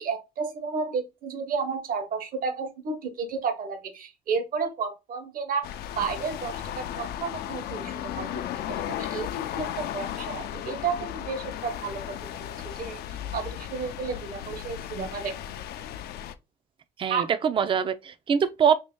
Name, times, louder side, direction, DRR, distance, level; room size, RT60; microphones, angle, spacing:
voice 1, 0.0-5.7 6.0-8.5 8.9-12.5 12.8-15.5 17.1-17.3, right 5 dB, 55° right, 1.0 m, -32 dB
sound 1, 5.6-16.3, left 11 dB, 70° left, 0.4 m, -35 dB
voice 2, 17.0-18.8, right 7 dB, 30° right, 0.4 m, -23 dB
3.0 x 2.7 x 3.5 m
cardioid pair, 110°, 17 cm